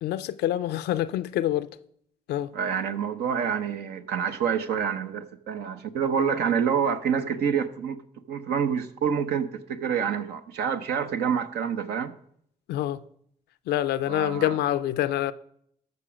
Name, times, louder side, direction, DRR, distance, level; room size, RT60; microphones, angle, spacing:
voice 1, 0.0-1.7 2.3-2.5 12.7-13.0 13.7-15.3, left 12 dB, 80° left, 0.5 m, -26 dB
voice 2, 2.5-8.0 8.3-12.1 14.1-14.5, right 7 dB, 80° right, 0.8 m, -27 dB
13.5 x 6.0 x 5.0 m
supercardioid pair, 55°, 17 cm